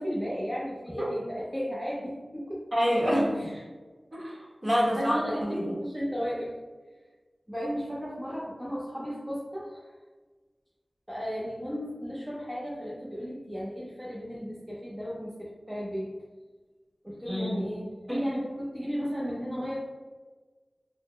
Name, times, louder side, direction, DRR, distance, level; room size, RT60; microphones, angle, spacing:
voice 1, 0.0-2.6 3.3-3.6 4.9-6.5 7.5-10.0 11.1-16.1 17.0-19.8, equal, 5° right, -7 dB, 0.7 m, -34 dB
voice 2, 2.7-3.5 4.1-5.7 17.2-17.7 18.1-18.2, equal, 30° right, -5 dB, 1.4 m, -27 dB
3.8 x 2.1 x 3.1 m, 1.3 s
cardioid pair, 40°, 0 cm